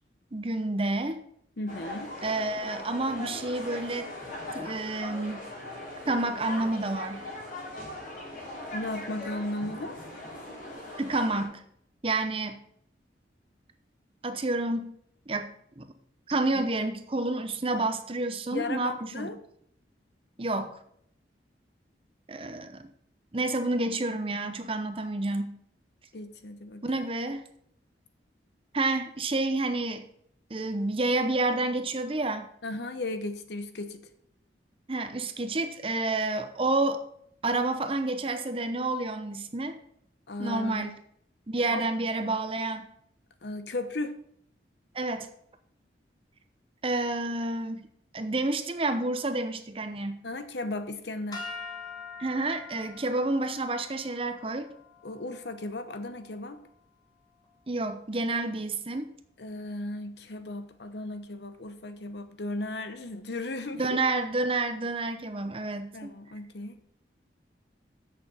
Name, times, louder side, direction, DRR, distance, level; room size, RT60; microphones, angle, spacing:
voice 1, 0.3-1.2 2.2-4.1 4.5-5.4 6.1-7.2 11.0-11.6 12.0-12.6 14.2-15.0 15.3-15.5 15.8-15.9 16.3-19.3 20.4-20.7 22.3-22.9 23.3-25.5 26.8-27.4 28.7-30.0 30.5-32.5 34.9-37.0 37.4-39.8 40.4-40.9 41.5-42.8 44.9-45.3 46.8-47.9 48.1-50.2 52.2-54.7 57.7-59.1 63.7-66.1, right 2 dB, 30° right, 9 dB, 0.7 m, -29 dB
voice 2, 1.6-2.1 8.7-10.0 18.5-19.4 26.1-26.9 32.6-34.0 40.3-40.9 41.7-41.9 43.4-44.2 50.2-51.5 55.0-56.6 59.4-64.0 65.9-66.8, left 2 dB, 65° left, 9 dB, 0.9 m, -35 dB
sound 1, 1.7-11.4, left 1 dB, 45° left, 3.0 m, -40 dB
sound 2, 51.3-57.7, left 4 dB, 20° left, 1.5 m, -45 dB
7.9 x 6.7 x 5.6 m, 0.69 s
head